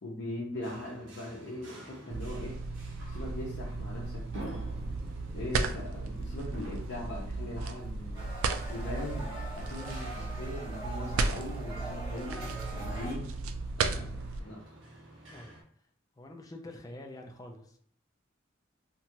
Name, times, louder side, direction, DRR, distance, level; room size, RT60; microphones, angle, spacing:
voice 1, 0.0-2.6 3.1-4.6 5.3-8.2 8.7-13.3 13.8-14.6, left 1 dB, 60° left, -4 dB, 0.6 m, -40 dB
sound 1, 0.6-15.6, right 1 dB, 65° right, 0.7 m, -49 dB
sound 2, 2.1-14.4, right 3 dB, 90° right, 0.3 m, -35 dB
sound 3, 8.1-13.1, right 1 dB, 25° right, 1.0 m, -43 dB
voice 2, 16.2-17.8, left 1 dB, 20° left, 3 dB, 0.3 m, -46 dB
2.9 x 2.3 x 2.8 m, 0.62 s
head